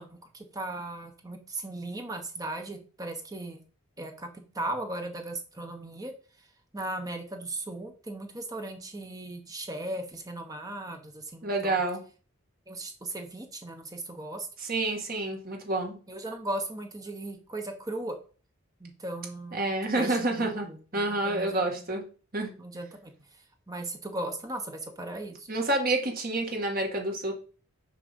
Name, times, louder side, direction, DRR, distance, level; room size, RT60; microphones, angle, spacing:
voice 1, 0.0-3.6 4.0-6.1 6.7-11.8 12.7-14.5 16.1-18.2 18.8-21.9 22.6-23.1 23.7-25.5, right 1 dB, 15° right, 4 dB, 1.0 m, -37 dB
voice 2, 11.4-12.0 14.6-16.0 19.5-20.7 20.9-22.1 22.3-22.5 25.5-27.3, right 2 dB, 40° right, 1 dB, 2.0 m, -28 dB
6.3 x 5.5 x 5.3 m, 0.38 s
head